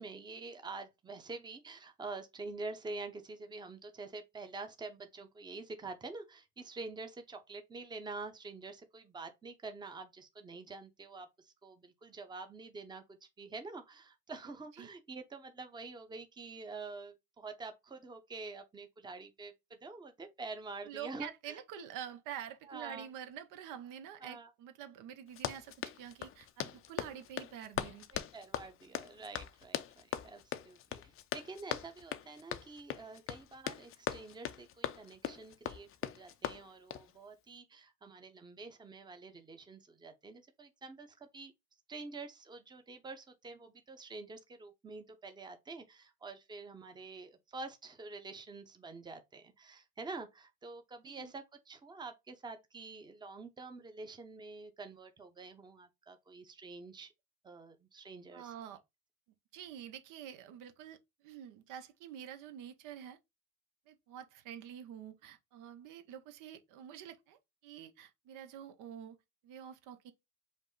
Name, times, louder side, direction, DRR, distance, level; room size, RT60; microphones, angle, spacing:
voice 1, 0.0-21.6 22.6-23.1 24.2-24.5 28.1-41.5 41.9-57.1 57.4-58.5, right 3 dB, 15° right, 0.7 m, -47 dB
voice 2, 20.9-28.1 51.0-51.3 58.3-58.8 59.5-63.2 63.9-69.2 69.4-70.1, right 9 dB, 70° right, 0.8 m, -47 dB
Run, 25.3-37.1, left 11 dB, 40° left, 0.5 m, -40 dB
5.2 x 2.0 x 3.8 m
supercardioid pair, 100°, 34 cm